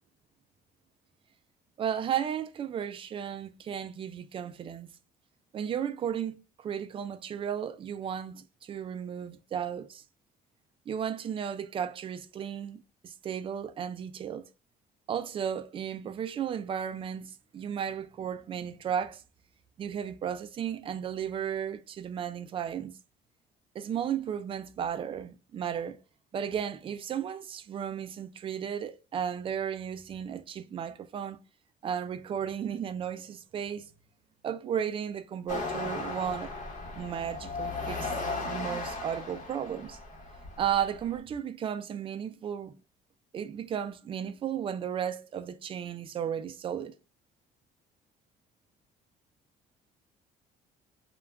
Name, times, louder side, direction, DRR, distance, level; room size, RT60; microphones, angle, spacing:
voice 1, 1.8-4.9 5.5-10.0 10.9-14.5 15.1-19.2 19.8-23.0 23.7-26.0 26.3-31.4 31.8-33.9 34.4-36.5 37.0-38.2 38.4-40.0 40.6-42.8 43.3-46.9, right 8 dB, 30° right, 0.3 m, -34 dB
sound 1, 35.5-41.2, left 3 dB, 50° left, 1.0 m, -36 dB
2.3 x 2.3 x 3.3 m
cardioid pair, 110°, 17 cm